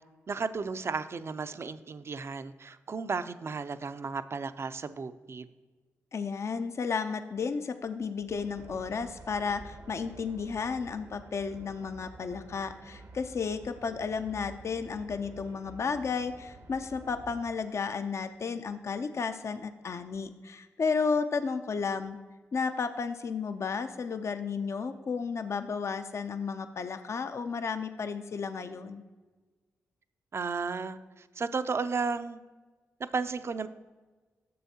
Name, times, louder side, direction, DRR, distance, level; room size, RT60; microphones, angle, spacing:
voice 1, 0.3-5.5 30.3-32.4 33.0-33.7, right 4 dB, 50° right, 12 dB, 0.5 m, -34 dB
voice 2, 6.1-22.2 22.5-29.0, left 5 dB, 55° left, 9 dB, 0.5 m, -33 dB
sound 1, 8.3-17.4, right 2 dB, 65° right, 0.8 m, -50 dB
9.3 x 6.9 x 2.8 m, 1.3 s
supercardioid pair, 45°, 6 cm